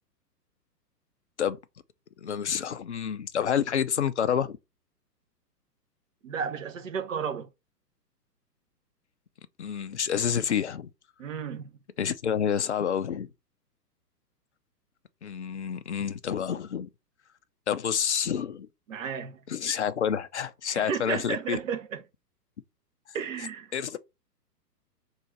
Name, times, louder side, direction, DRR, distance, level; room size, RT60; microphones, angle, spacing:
voice 1, 2.2-4.6 9.6-10.9 12.0-13.3 15.2-16.9 17.7-18.7 19.5-21.6 23.7-24.0, left 8 dB, 45° left, 0.5 m, -28 dB
voice 2, 6.2-7.5 11.2-11.7 18.9-19.4 20.7-22.0 23.1-23.7, right 6 dB, 50° right, 0.9 m, -33 dB
3.7 x 2.5 x 4.4 m
figure-of-eight pair, 120°, 49 cm